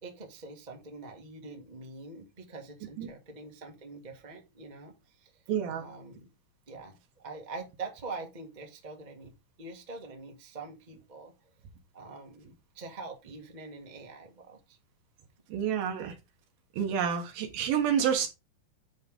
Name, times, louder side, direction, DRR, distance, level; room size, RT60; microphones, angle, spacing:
voice 1, 0.0-5.4 5.7-6.3 6.7-9.3 9.6-11.5 11.9-14.8, right 3 dB, 25° right, 0.9 m, -44 dB
voice 2, 5.5-5.8 15.5-16.1 16.8-18.3, right 8 dB, 80° right, 3.2 m, -28 dB
10.0 x 3.6 x 5.3 m
omnidirectional pair, 4.2 m